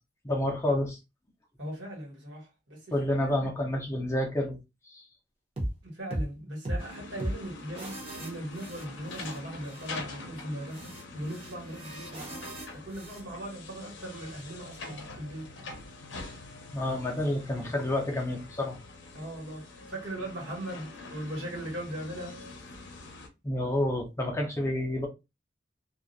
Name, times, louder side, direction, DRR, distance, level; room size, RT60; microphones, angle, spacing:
voice 1, 0.2-1.0 2.9-4.6 4.9-5.1 16.7-18.8 23.4-25.1, left 1 dB, 15° left, 0.5 m, -29 dB
voice 2, 1.6-3.5 5.8-15.5 19.1-22.4, right 1 dB, 65° right, 1.2 m, -39 dB
sound 1, 5.6-5.8 6.1-6.3 6.7-6.8 7.2-7.4 7.8-9.4 9.6-9.9 10.7-13.2, right 1 dB, 35° right, 0.7 m, -37 dB
sound 2, 6.8-23.3, left 2 dB, 75° left, 0.6 m, -45 dB
2.3 x 2.1 x 2.5 m
head